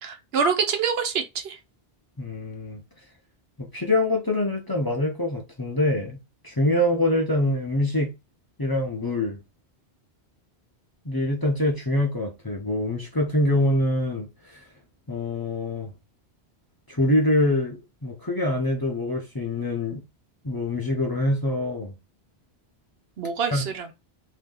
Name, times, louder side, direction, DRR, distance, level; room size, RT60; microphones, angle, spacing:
voice 1, 0.0-1.6 23.2-23.9, right 6 dB, 70° right, 0.9 m, -26 dB
voice 2, 2.2-2.8 3.6-6.2 6.4-8.1 8.6-9.4 11.0-14.6 15.1-15.9 16.9-20.0 20.4-21.9 23.5-23.7, left 1 dB, 25° left, 0.7 m, -25 dB
2.7 x 2.7 x 3.7 m
omnidirectional pair, 1.1 m